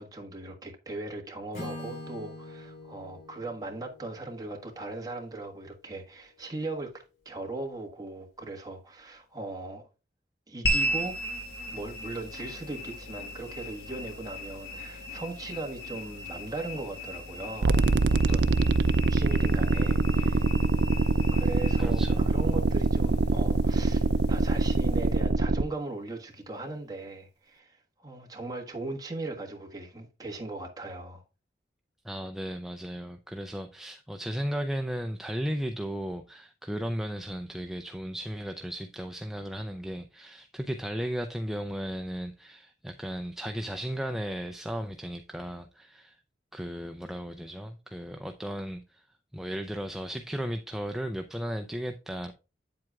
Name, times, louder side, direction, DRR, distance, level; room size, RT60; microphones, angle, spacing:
voice 1, 0.0-9.9 10.5-11.2 11.7-17.8 18.1-18.6 19.1-20.5 21.3-31.2, right 2 dB, 20° right, 1.4 m, -39 dB
Acoustic guitar / Strum, 1.5-5.5, left 2 dB, 45° left, 3.8 m, -44 dB
sound 1, 10.6-25.3, equal, 75° left, 1.7 m, -37 dB
sound 2, 17.6-25.6, right 3 dB, 70° right, 0.5 m, -24 dB
voice 2, 21.8-22.3 32.0-46.2 46.5-49.1 49.3-52.3, equal, ahead, 0.4 m, -35 dB
8.6 x 7.6 x 2.3 m
head